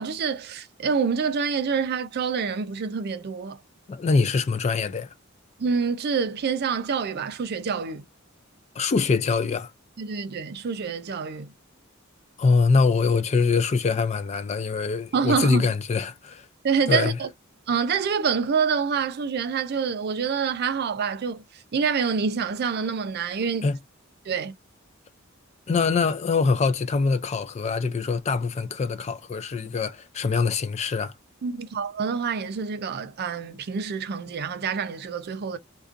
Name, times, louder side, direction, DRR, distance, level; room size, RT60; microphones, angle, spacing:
voice 1, 0.0-3.6 5.6-8.0 10.0-11.5 15.1-15.7 16.6-17.3 17.7-21.4 21.7-23.7 24.3-24.5 31.4-35.6, right 6 dB, 50° right, 0.4 m, -26 dB
voice 2, 3.9-5.1 8.8-9.7 12.4-16.5 16.9-17.2 23.6-23.8 25.7-31.1, left 4 dB, 30° left, 0.3 m, -24 dB
2.5 x 2.2 x 2.4 m
head